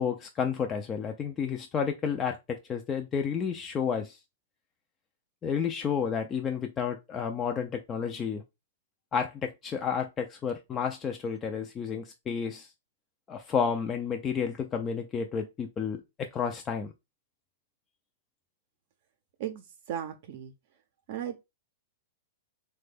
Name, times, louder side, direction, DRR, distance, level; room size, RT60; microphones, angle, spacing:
voice 1, 0.0-4.2 5.4-8.4 9.1-12.7 13.3-16.9, left 6 dB, 20° left, 0.3 m, -31 dB
voice 2, 19.4-20.5 21.1-21.4, right 10 dB, 60° right, 0.5 m, -36 dB
3.1 x 2.2 x 3.4 m
hypercardioid pair, 135°, 0 cm